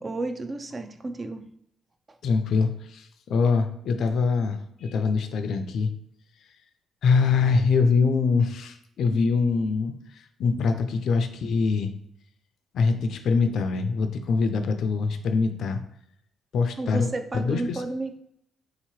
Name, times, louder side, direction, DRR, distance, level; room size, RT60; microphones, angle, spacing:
voice 1, 0.0-1.4 16.8-18.2, right 2 dB, 30° right, 7 dB, 0.4 m, -32 dB
voice 2, 2.2-5.9 7.0-9.9 10.4-11.9 12.7-15.8 16.5-17.1 17.3-17.8, left 4 dB, 70° left, 7 dB, 0.4 m, -23 dB
4.0 x 2.8 x 3.0 m, 0.72 s
cardioid pair, 90°, 0 cm